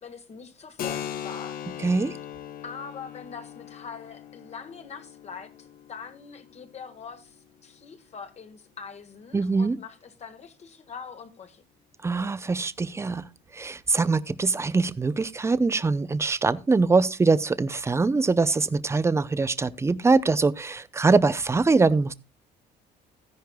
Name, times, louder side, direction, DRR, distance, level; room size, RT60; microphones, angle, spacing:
voice 1, 0.0-1.6 2.6-11.6, left 6 dB, 40° left, 1.4 m, -43 dB
Keyboard (musical), 0.8-8.2, left 9 dB, 60° left, 0.9 m, -40 dB
voice 2, 1.8-2.1 9.3-9.8 12.0-13.2 13.5-22.1, right 3 dB, 15° right, 0.6 m, -23 dB
14.0 x 10.5 x 2.3 m
cardioid pair, 110°, 17 cm